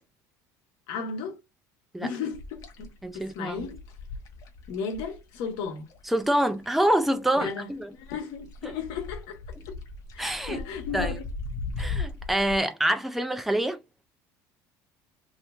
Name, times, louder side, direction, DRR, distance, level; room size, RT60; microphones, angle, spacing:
voice 1, 0.9-1.4 2.0-3.8 4.7-5.9 7.3-9.8 10.1-11.2, left 6 dB, 70° left, 1.1 m, -35 dB
sound 1, 2.3-7.1 7.4-12.6, left 3 dB, 45° left, 0.8 m, -37 dB
voice 2, 3.0-3.7 6.1-7.9 8.6-8.7 10.2-10.6 10.9-11.1 11.8-13.8, right 1 dB, ahead, 0.5 m, -26 dB
2.9 x 2.8 x 3.3 m
cardioid pair, 145°, 8 cm